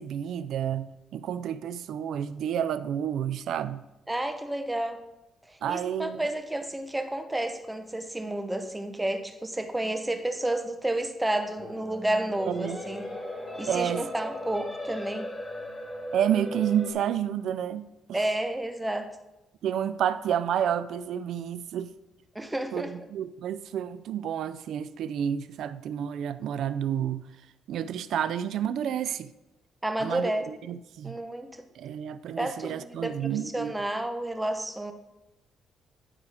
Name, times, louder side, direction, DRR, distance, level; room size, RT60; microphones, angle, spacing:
voice 1, 0.0-3.8 5.6-6.2 12.5-12.8 13.7-14.1 16.1-18.2 19.6-21.9 22.7-27.3 27.7-29.3 30.0-31.2 31.8-33.7, right 9 dB, 75° right, 0.4 m, -30 dB
voice 2, 4.1-5.0 5.5-13.1 13.6-15.3 18.1-19.1 22.3-22.9 29.8-30.5 31.0-31.7 32.4-34.9, right 1 dB, 10° right, 0.9 m, -31 dB
sound 1, 11.6-16.9, left 1 dB, 15° left, 2.0 m, -37 dB
11.0 x 4.8 x 4.9 m
cardioid pair, 90°, 0 cm